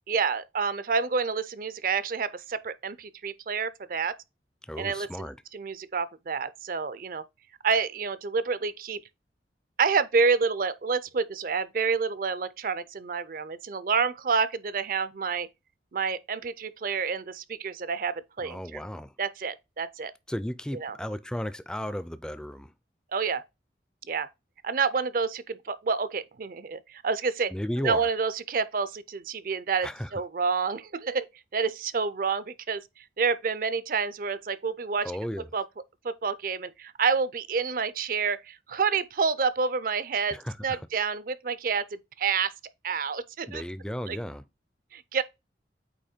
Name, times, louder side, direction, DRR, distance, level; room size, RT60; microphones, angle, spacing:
voice 1, 0.1-4.2 4.8-5.3 5.5-7.2 7.6-9.0 9.8-15.5 15.9-18.8 19.2-20.1 20.8-21.0 23.1-23.4 24.1-24.3 24.6-27.5 27.8-31.3 31.5-32.8 33.2-35.1 35.5-35.6 36.0-40.4 40.6-42.5 42.8-43.6 44.1-44.2 44.9-45.2, right 5 dB, 50° right, 0.5 m, -28 dB
voice 2, 4.7-5.4 18.4-19.1 20.3-22.7 27.5-28.1 29.8-30.1 35.0-35.5 40.3-40.9 43.5-44.4, equal, 5° left, 0.4 m, -34 dB
8.4 x 3.0 x 4.3 m
head